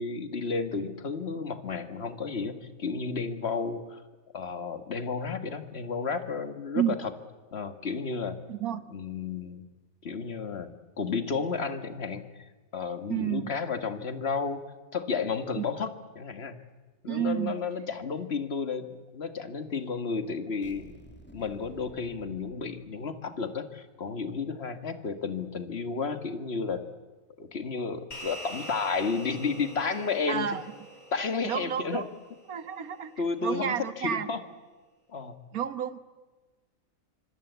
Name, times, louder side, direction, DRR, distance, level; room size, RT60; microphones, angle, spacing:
voice 1, 0.0-4.0 4.3-7.1 7.5-8.4 8.9-9.6 10.0-10.7 11.0-12.2 12.7-14.6 14.9-16.6 17.0-21.0 21.3-26.8 27.4-30.6 31.1-32.0 33.2-34.4 35.1-35.3, left 5 dB, 45° left, 9 dB, 1.9 m, -32 dB
voice 2, 8.5-8.8 13.1-13.5 15.6-15.7 17.1-17.6 30.3-30.6 31.4-32.1 32.5-33.1 33.4-34.3 35.5-36.0, right 9 dB, 85° right, 12 dB, 1.7 m, -30 dB
sound 1, 20.6-23.4, equal, 5° left, 2.4 m, -53 dB
sound 2, 28.1-32.8, right 1 dB, 75° left, 4.4 m, -45 dB
26.0 x 25.0 x 8.1 m, 1.3 s
omnidirectional pair, 1.5 m